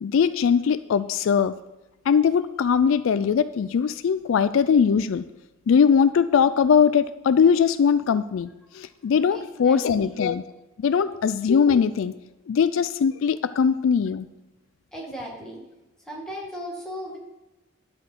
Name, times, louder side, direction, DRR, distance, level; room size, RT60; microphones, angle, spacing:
voice 1, 0.0-1.5 2.1-5.2 5.7-10.4 10.8-12.1 12.5-14.3, left 6 dB, 70° left, 14 dB, 0.3 m, -21 dB
voice 2, 9.3-10.2 10.9-11.2 14.9-15.6 16.1-17.2, equal, 5° left, -3 dB, 1.9 m, -37 dB
11.0 x 4.4 x 7.3 m, 1.0 s
head